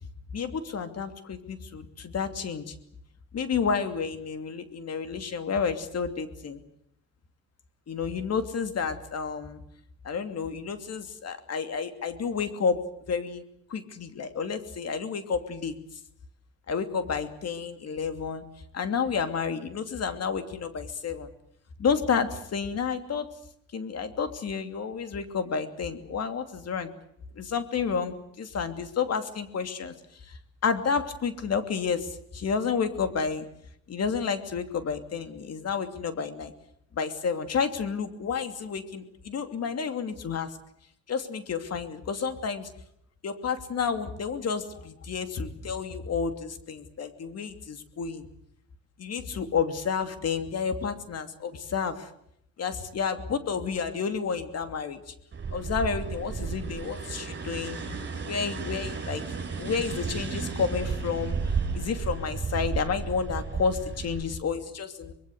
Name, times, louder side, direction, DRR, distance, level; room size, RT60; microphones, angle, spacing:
voice 1, 0.3-2.7 3.3-6.6 7.9-9.6 10.0-13.4 13.7-15.7 16.7-18.4 18.7-21.3 21.8-23.3 23.7-26.9 27.3-29.9 30.2-33.5 33.9-36.5 37.0-40.6 41.1-42.7 43.2-48.3 49.0-52.1 52.6-55.1 55.5-57.8 58.2-59.2 59.6-65.1, left 6 dB, 55° left, 8 dB, 2.9 m, -30 dB
sound 1, 55.3-64.2, right 5 dB, 35° right, 6.9 m, -33 dB
25.0 x 22.0 x 8.1 m, 0.71 s
cardioid pair, 90°, 30 cm